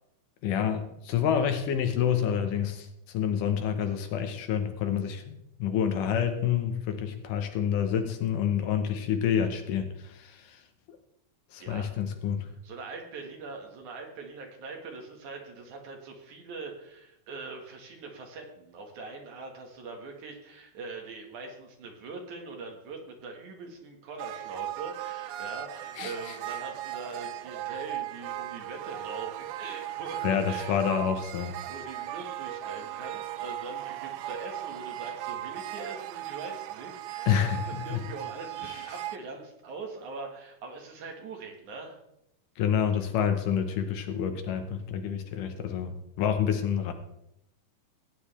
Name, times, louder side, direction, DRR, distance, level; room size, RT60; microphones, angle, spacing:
voice 1, 0.4-10.6 11.5-12.5 26.0-26.4 30.2-31.6 37.3-38.0 38.7-38.8 42.6-46.9, left 8 dB, 80° left, 7 dB, 2.6 m, -28 dB
voice 2, 11.6-11.9 12.6-30.7 31.7-42.0, right 3 dB, 65° right, 2 dB, 3.0 m, -42 dB
sound 1, 24.2-39.2, right 14 dB, 80° right, 1.9 m, -37 dB
17.0 x 9.5 x 3.3 m, 0.79 s
omnidirectional pair, 3.9 m